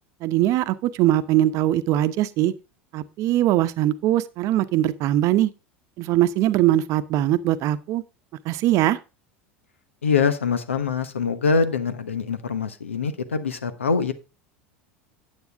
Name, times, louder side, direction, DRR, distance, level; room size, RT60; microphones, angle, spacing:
voice 1, 0.2-2.5 2.9-5.5 6.0-8.0 8.4-9.0, right 13 dB, 55° right, 0.8 m, -21 dB
voice 2, 10.0-14.1, left 5 dB, 90° left, 1.1 m, -24 dB
9.5 x 8.8 x 3.5 m
hypercardioid pair, 80°, 7 cm